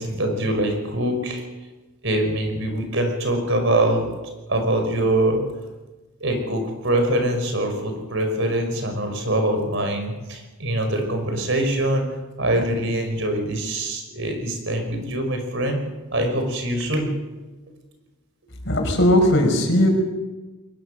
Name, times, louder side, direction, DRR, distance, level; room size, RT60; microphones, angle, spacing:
voice 1, 0.0-1.4 2.0-4.1 4.5-5.4 6.2-12.1 12.4-15.8 16.1-17.1, right 1 dB, 60° right, 5 dB, 5.3 m, -23 dB
voice 2, 18.7-19.9, left 1 dB, 60° left, 3 dB, 5.5 m, -18 dB
22.5 x 20.0 x 6.6 m, 1.1 s
head